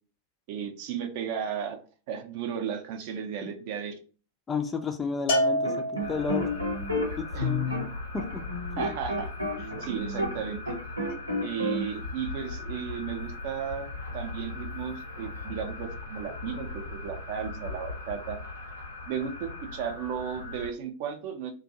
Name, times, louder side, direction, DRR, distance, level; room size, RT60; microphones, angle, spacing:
voice 1, 0.5-1.8 2.1-4.0 7.3-7.8 8.8-9.3 9.6-10.8 11.4-18.4 19.1-21.5, right 8 dB, 50° right, 6 dB, 0.5 m, -35 dB
voice 2, 4.5-6.5 7.2-7.7 8.1-8.4 8.8-8.9, left 5 dB, 15° left, 7 dB, 0.4 m, -32 dB
Bell, 5.3-6.6, equal, 50° left, 0.7 m, -27 dB
sound 1, 5.6-10.4 10.7-11.9, left 1 dB, 90° right, 0.6 m, -31 dB
sound 2, 6.0-20.7, left 3 dB, 80° left, 0.9 m, -39 dB
2.5 x 2.3 x 2.7 m, 0.37 s
figure-of-eight pair, 90°, 0 cm